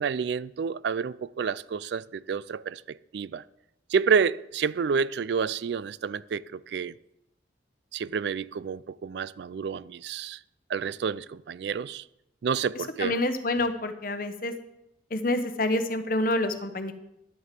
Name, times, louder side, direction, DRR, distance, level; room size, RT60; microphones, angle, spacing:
voice 1, 0.0-3.4 3.9-6.9 7.9-10.4 10.7-12.0 12.4-13.1, right 6 dB, 65° right, 0.3 m, -29 dB
voice 2, 12.7-14.5 15.1-16.9, left 2 dB, 50° left, 1.0 m, -28 dB
11.0 x 6.5 x 7.5 m
head